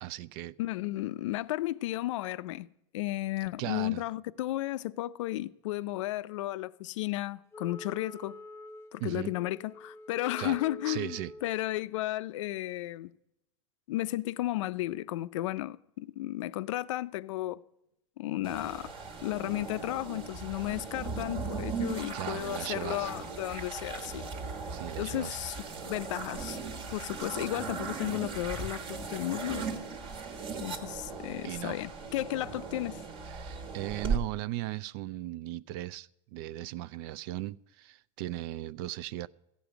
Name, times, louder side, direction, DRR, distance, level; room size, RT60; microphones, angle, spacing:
voice 1, 0.0-0.6 3.6-4.0 9.0-9.3 10.4-10.6 10.9-11.3 22.1-23.1 24.7-25.4 31.4-31.8 33.3-39.3, right 16 dB, 50° right, 0.4 m, -37 dB
voice 2, 0.6-2.7 2.9-8.4 8.9-13.1 13.9-17.6 18.2-18.9 19.2-24.3 25.0-25.6 25.8-26.6 26.9-29.7 30.6-33.0, left 16 dB, 80° left, 0.4 m, -34 dB
Wind instrument woodwind instrument, 7.5-11.7, left 2 dB, 15° left, 0.6 m, -47 dB
sound 1, 18.4-34.2, right 4 dB, 35° right, 1.4 m, -38 dB
14.5 x 5.1 x 9.0 m
supercardioid pair, 150°, 16 cm